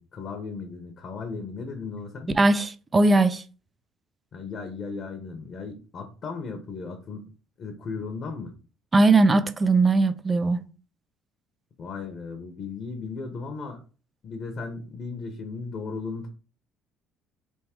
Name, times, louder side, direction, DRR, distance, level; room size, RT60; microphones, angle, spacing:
voice 1, 0.0-2.4 4.3-7.3 7.6-8.5 11.8-13.8 14.2-16.3, left 4 dB, 50° left, 1.0 m, -36 dB
voice 2, 2.4-3.4 8.9-10.7, right 2 dB, 25° right, 0.5 m, -20 dB
3.6 x 2.8 x 4.4 m
supercardioid pair, 85°, 0 cm